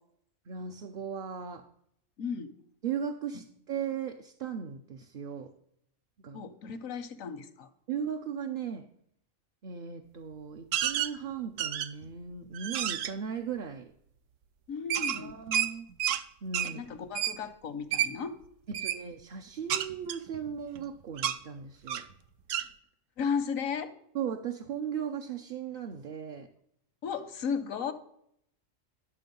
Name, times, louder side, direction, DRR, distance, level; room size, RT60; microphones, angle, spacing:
voice 1, 0.5-1.6 2.8-5.5 6.2-6.4 7.9-8.9 9.6-13.9 15.1-15.9 16.4-16.8 18.8-22.0 24.1-26.5, right 7 dB, 50° right, 4 dB, 0.7 m, -37 dB
voice 2, 2.2-2.5 3.3-3.4 6.3-7.7 14.7-15.4 16.6-18.4 18.7-18.8 23.2-23.9 27.0-27.9, left 6 dB, 90° left, 12 dB, 1.3 m, -35 dB
sound 1, 10.7-11.1 11.6-12.1 12.5-13.1 14.9-16.2 16.5-16.7 17.2-17.4 17.9-18.1 18.7-19.0 19.7-20.8 21.2-21.4 21.9-22.1 22.5-22.7, right 10 dB, 75° right, 1.0 m, -30 dB
11.0 x 6.2 x 5.2 m, 0.72 s
omnidirectional pair, 1.4 m